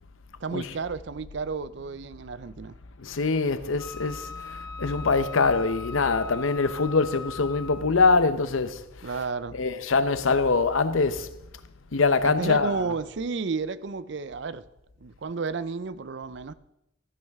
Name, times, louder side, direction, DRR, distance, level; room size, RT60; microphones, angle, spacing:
voice 1, 0.4-2.8 9.0-9.6 12.2-14.7 15.0-16.5, right 4 dB, 60° right, 0.5 m, -32 dB
voice 2, 3.0-9.2 9.5-11.3 11.9-12.9, left 4 dB, 80° left, 0.7 m, -24 dB
Wind instrument woodwind instrument, 3.8-8.0, left 4 dB, 15° left, 2.4 m, -40 dB
13.5 x 12.0 x 3.5 m
head